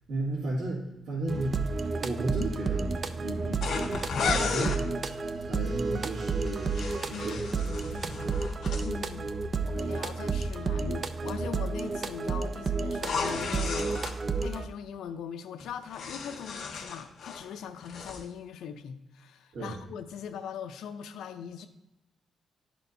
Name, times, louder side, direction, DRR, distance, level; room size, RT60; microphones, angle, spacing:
voice 1, 0.1-4.1 4.3-5.0 5.5-6.7 7.1-8.4 19.5-19.8, right 2 dB, 85° right, -7 dB, 2.0 m, -34 dB
sound 1, 1.3-14.7, right 4 dB, 40° right, 0.4 m, -31 dB
sound 2, 3.6-4.8 6.5-8.9 12.9-14.2 15.6-17.5 17.8-18.2, left 5 dB, 60° left, 1.3 m, -34 dB
voice 2, 8.8-9.3 9.6-21.7, left 8 dB, 85° left, 7 dB, 0.4 m, -41 dB
12.0 x 4.3 x 2.7 m, 0.92 s
cardioid pair, 105°, 0 cm